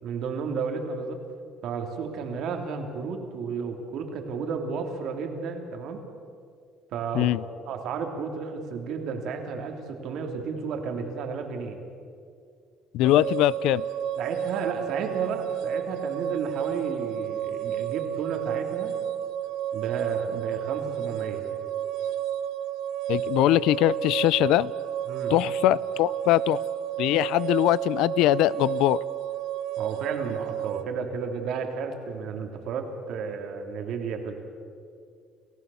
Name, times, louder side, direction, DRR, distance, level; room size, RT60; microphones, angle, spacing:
voice 1, 0.0-1.2 1.6-6.0 6.9-7.4 7.7-11.8 14.2-18.9 19.7-21.4 25.1-25.4 29.8-34.3, right 5 dB, 65° right, 4 dB, 3.0 m, -32 dB
voice 2, 12.9-13.8 23.1-24.7 25.3-26.6 27.0-29.0, left 15 dB, 80° left, 21 dB, 0.4 m, -22 dB
sound 1, 13.0-30.8, right 10 dB, 80° right, 1.2 m, -31 dB
29.5 x 15.0 x 7.1 m, 2.4 s
cardioid pair, 125°, 0 cm